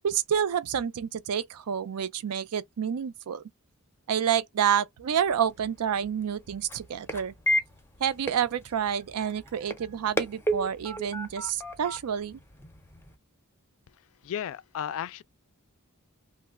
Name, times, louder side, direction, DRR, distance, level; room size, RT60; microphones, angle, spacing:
voice 1, 0.0-3.4 4.1-7.3 8.0-12.4, right 8 dB, 80° right, 0.4 m, -28 dB
sound 1, 5.3-13.2, equal, 10° left, 0.5 m, -34 dB
voice 2, 14.2-15.2, left 9 dB, 65° left, 0.3 m, -34 dB
3.0 x 2.0 x 3.5 m
head